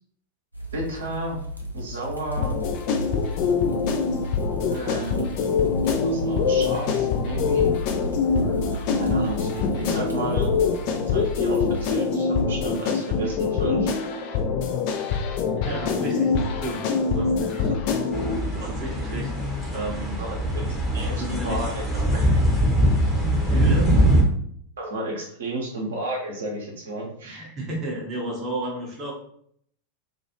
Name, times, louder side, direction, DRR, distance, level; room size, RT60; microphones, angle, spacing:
sound 1, 0.5-11.9, equal, 85° right, 0.4 m, -35 dB
voice 1, 0.7-1.4 1.7-2.6 4.7-5.4 6.0-7.7 9.0-10.5 11.1-13.9 20.2-20.6 20.9-21.8 22.1-22.2 24.8-27.4, right 1 dB, 65° right, -2 dB, 0.8 m, -32 dB
sound 2, 2.4-18.4, left 5 dB, 45° left, 0.3 m, -24 dB
voice 2, 15.6-16.9 17.1-18.0 18.5-19.3 19.7-20.2 21.1-21.7 23.4-24.0 27.2-29.1, right 1 dB, 30° right, -3 dB, 0.7 m, -32 dB
sound 3, 18.1-24.2, equal, 5° left, 0.8 m, -22 dB
2.4 x 2.3 x 2.8 m, 0.65 s
figure-of-eight pair, 90°, 0 cm